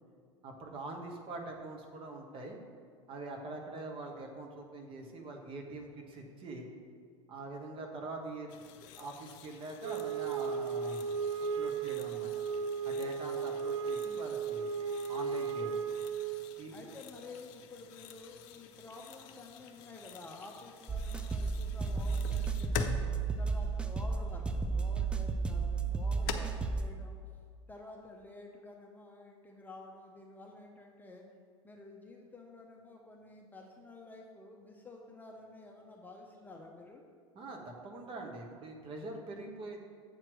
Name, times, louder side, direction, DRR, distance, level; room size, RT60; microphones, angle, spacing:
voice 1, 0.4-2.6 3.1-6.7 7.3-12.3 12.8-14.7 15.1-15.8 16.6-16.9 37.3-39.8, right 2 dB, 35° right, 2 dB, 1.3 m, -44 dB
sound 1, 8.5-26.3, left 9 dB, 50° left, 0.6 m, -48 dB
Wind instrument woodwind instrument, 9.8-16.6, right 6 dB, 70° right, 0.4 m, -35 dB
voice 2, 16.7-22.9 23.4-27.2 27.7-31.2 31.6-37.0, left 2 dB, 10° left, 0 dB, 0.8 m, -51 dB
sound 2, 20.9-26.9, right 4 dB, 5° right, 0.4 m, -33 dB
7.8 x 4.5 x 6.3 m, 2.1 s
figure-of-eight pair, 80°, 16 cm